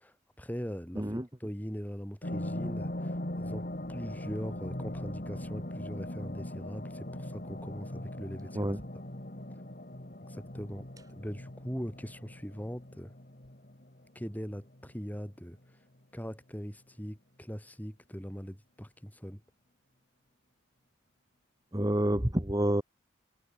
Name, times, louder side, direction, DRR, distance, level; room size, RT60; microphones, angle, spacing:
voice 1, 0.0-8.7 10.3-13.1 14.1-15.6 16.1-19.4, equal, 10° left, 6.2 m, -41 dB
voice 2, 0.9-1.3 8.5-8.8 21.7-22.8, right 1 dB, 20° right, 1.7 m, -28 dB
sound 1, 2.2-15.2 15.6-15.7, left 1 dB, 50° left, 2.3 m, -40 dB
head